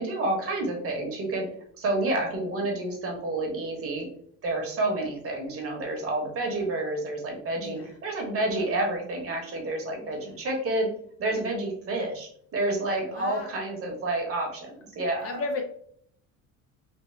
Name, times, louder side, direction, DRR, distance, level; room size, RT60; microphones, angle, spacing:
voice 1, 0.0-1.5 1.8-4.1 4.4-10.9 11.2-15.4, right 2 dB, 40° right, 1 dB, 1.1 m, -29 dB
voice 2, 7.5-7.9 10.0-10.4 13.0-13.5 15.1-15.6, left 3 dB, 40° left, 4 dB, 0.5 m, -36 dB
3.4 x 2.1 x 3.2 m, 0.62 s
cardioid pair, 130°, 36 cm